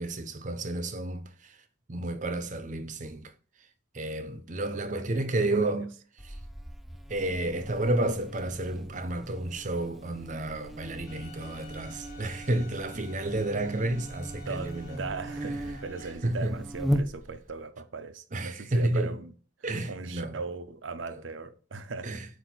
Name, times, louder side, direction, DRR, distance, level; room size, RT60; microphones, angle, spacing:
voice 1, 0.0-1.5 1.9-3.3 3.9-5.9 6.2-6.3 7.1-15.0 16.2-16.6 18.3-19.2 19.6-20.4 22.0-22.3, right 2 dB, 40° right, 0.7 m, -31 dB
voice 2, 4.7-5.1 5.4-5.9 12.9-13.1 14.5-19.3 19.6-22.2, right 4 dB, 85° right, 0.7 m, -39 dB
Buzz, 6.2-17.6, equal, ahead, 0.4 m, -38 dB
Bowed string instrument, 11.1-16.1, left 1 dB, 80° left, 1.5 m, -51 dB
8.0 x 2.7 x 6.0 m
head